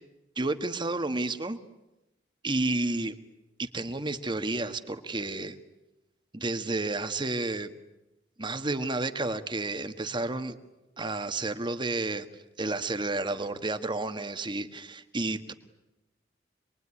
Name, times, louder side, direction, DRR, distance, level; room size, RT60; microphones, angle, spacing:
voice 1, 0.3-1.6 2.4-3.2 3.6-5.6 6.3-7.7 8.4-10.6 11.0-12.2 12.6-15.5, right 2 dB, 25° right, 9 dB, 1.6 m, -31 dB
27.5 x 22.0 x 9.9 m, 1.0 s
head